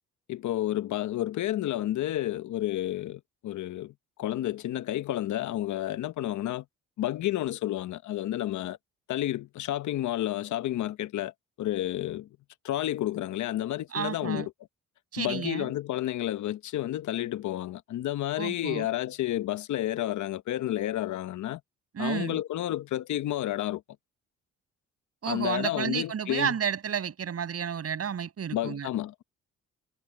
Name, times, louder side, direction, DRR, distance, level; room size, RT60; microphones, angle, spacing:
voice 1, 0.3-6.6 7.0-8.8 9.1-11.3 11.6-12.3 12.6-14.5 15.2-21.6 22.0-23.8 25.3-26.5 28.5-29.2, left 13 dB, 75° left, 1.0 m, -30 dB
voice 2, 13.9-14.5 15.1-15.7 18.4-18.9 21.9-22.4 25.2-28.9, right 8 dB, 50° right, 6.9 m, -31 dB
cardioid pair, 90°, 30 cm